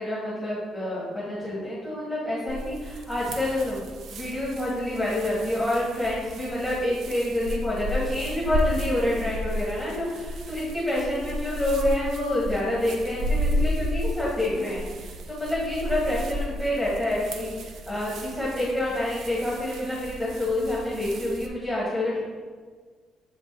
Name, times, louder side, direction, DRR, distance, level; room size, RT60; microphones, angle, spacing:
voice 1, 0.0-22.2, left 1 dB, ahead, -8 dB, 1.5 m, -28 dB
sound 1, 2.5-21.5, equal, 60° right, 0.6 m, -33 dB
7.0 x 3.9 x 3.7 m, 1.5 s
cardioid pair, 145°, 0 cm